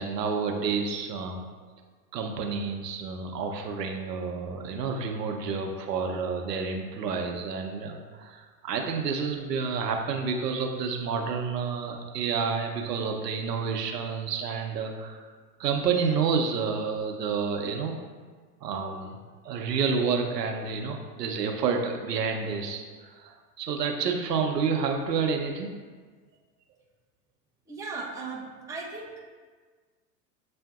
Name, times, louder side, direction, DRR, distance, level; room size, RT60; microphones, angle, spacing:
voice 1, 0.0-1.5 2.1-15.2 15.6-18.0 18.6-25.7, right 5 dB, 80° right, 3 dB, 0.7 m, -29 dB
voice 2, 27.7-29.2, right 3 dB, 5° right, -3 dB, 0.4 m, -37 dB
7.5 x 2.5 x 2.4 m, 1.5 s
hypercardioid pair, 90°, 48 cm